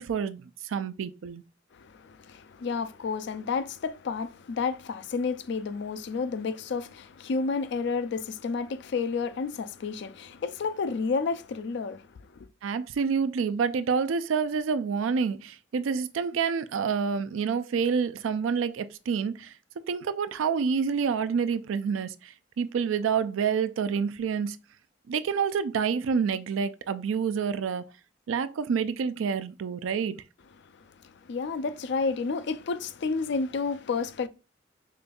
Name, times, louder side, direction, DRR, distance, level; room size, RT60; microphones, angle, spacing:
voice 1, 0.0-1.4 12.6-19.5 19.9-24.6 25.1-27.9 28.3-30.2, right 6 dB, 90° right, 0.4 m, -28 dB
voice 2, 1.7-12.5 30.6-34.3, left 4 dB, 60° left, 0.4 m, -31 dB
4.9 x 2.3 x 2.5 m
head